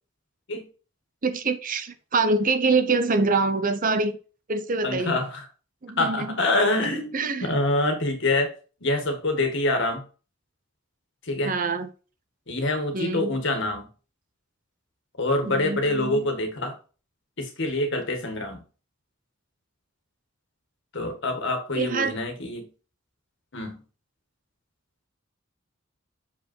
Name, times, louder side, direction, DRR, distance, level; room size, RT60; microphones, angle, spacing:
voice 1, 1.2-4.1 4.5-5.2 5.8-6.3 7.1-7.5 11.4-11.9 12.9-13.4 15.4-16.3 21.8-22.1, right 3 dB, 40° right, 0.8 m, -25 dB
voice 2, 4.8-5.4 6.0-7.1 7.4-8.5 8.8-10.0 11.2-11.5 12.5-13.9 15.2-16.8 17.4-18.6 20.9-22.7 23.5-23.8, left 2 dB, 65° left, 1.8 m, -26 dB
6.7 x 5.4 x 4.5 m
head